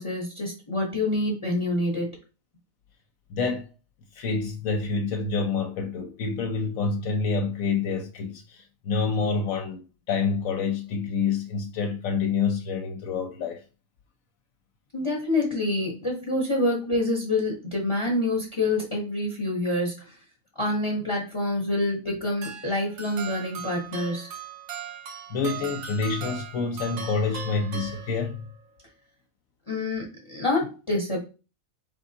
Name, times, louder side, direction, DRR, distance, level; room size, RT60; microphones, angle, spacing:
voice 1, 0.0-2.1 14.9-20.2 20.6-24.3 29.7-31.2, left 2 dB, 25° left, 0.9 m, -27 dB
voice 2, 3.3-3.7 4.1-9.8 10.1-13.6 25.3-28.5, left 5 dB, 80° left, 1.1 m, -27 dB
sound 1, 22.4-28.6, right 7 dB, 90° right, 1.2 m, -39 dB
4.6 x 3.6 x 2.7 m
omnidirectional pair, 1.4 m